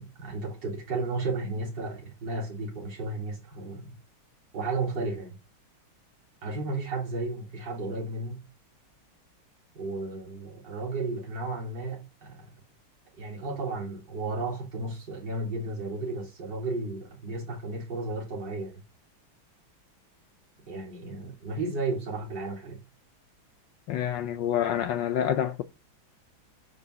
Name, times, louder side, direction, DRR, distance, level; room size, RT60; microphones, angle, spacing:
voice 1, 0.0-4.0 4.5-5.4 6.4-8.4 9.8-12.5 13.2-18.8 20.7-22.8, right 3 dB, 55° right, 4.2 m, -33 dB
voice 2, 23.9-25.6, left 10 dB, 70° left, 1.2 m, -27 dB
9.1 x 5.4 x 6.6 m
omnidirectional pair, 2.2 m